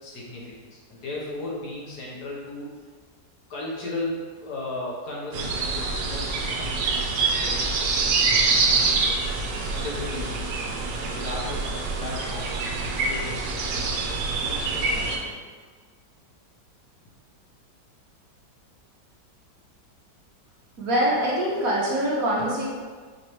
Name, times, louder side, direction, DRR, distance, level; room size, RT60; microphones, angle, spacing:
voice 1, 0.0-2.7 3.5-6.8 7.3-7.6 9.6-10.7 11.0-15.4, left 2 dB, 65° left, -5 dB, 1.4 m, -36 dB
sound 1, 5.3-15.2, right 4 dB, 80° right, 1.3 m, -25 dB
voice 2, 20.8-22.6, right 1 dB, 60° right, -5 dB, 1.1 m, -24 dB
5.1 x 3.0 x 3.0 m, 1.5 s
omnidirectional pair, 1.9 m